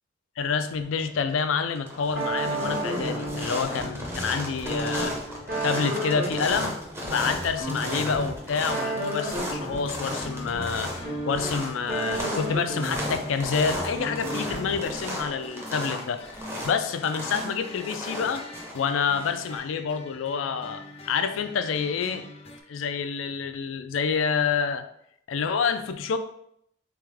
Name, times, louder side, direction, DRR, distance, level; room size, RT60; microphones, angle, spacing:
voice 1, 0.4-5.1 5.6-6.8 7.1-10.9 11.3-18.5 18.7-22.3 22.7-24.8 25.3-26.2, left 6 dB, 90° left, 10 dB, 0.4 m, -28 dB
sound 1, 1.0-1.4 1.7-19.6, left 1 dB, 15° right, 0.8 m, -35 dB
sound 2, 2.2-15.1, right 1 dB, 45° right, 1.2 m, -33 dB
sound 3, 9.4-22.6, left 1 dB, 30° left, 0.5 m, -45 dB
3.5 x 3.4 x 3.4 m, 0.72 s
head